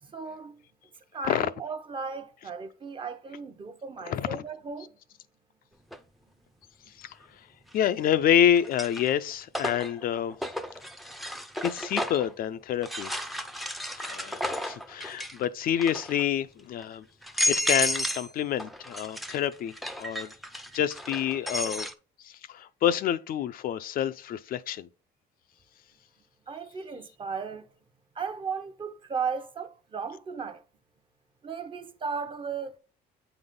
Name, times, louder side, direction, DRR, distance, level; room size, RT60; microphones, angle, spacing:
voice 1, 0.0-0.6 1.1-4.9 26.5-27.7 28.1-30.6 31.4-32.8, right 5 dB, 30° right, 0.8 m, -36 dB
voice 2, 4.1-4.4 7.0-7.1 7.7-10.4 11.6-13.1 14.0-17.0 17.5-20.3 20.7-21.9 22.2-24.9, left 10 dB, 60° left, 0.5 m, -28 dB
sound 1, 5.9-6.0 7.7-8.2 8.6-12.3 12.8-15.4 15.7-16.2 16.8-16.9 17.2-18.3 18.6-21.9, left 1 dB, ahead, 0.5 m, -32 dB
8.5 x 4.0 x 3.7 m
cardioid pair, 110°, 17 cm